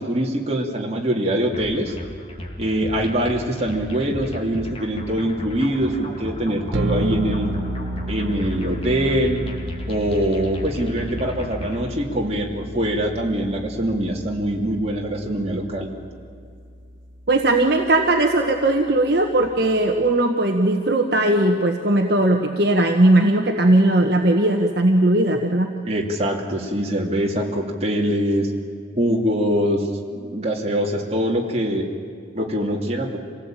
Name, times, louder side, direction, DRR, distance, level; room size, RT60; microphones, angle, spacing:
voice 1, 0.0-1.9 2.6-7.5 8.1-9.5 9.9-15.9 25.8-28.5 29.0-29.9 30.2-31.9 32.3-33.2, equal, 30° right, -1 dB, 2.9 m, -23 dB
sound 1, 1.5-11.9, equal, 30° left, 2.5 m, -35 dB
sound 2, 6.7-20.2, right 1 dB, 85° right, 1.1 m, -33 dB
voice 2, 17.3-25.7, right 1 dB, 55° right, 2 dB, 1.4 m, -18 dB
26.5 x 17.5 x 9.0 m, 2.3 s
head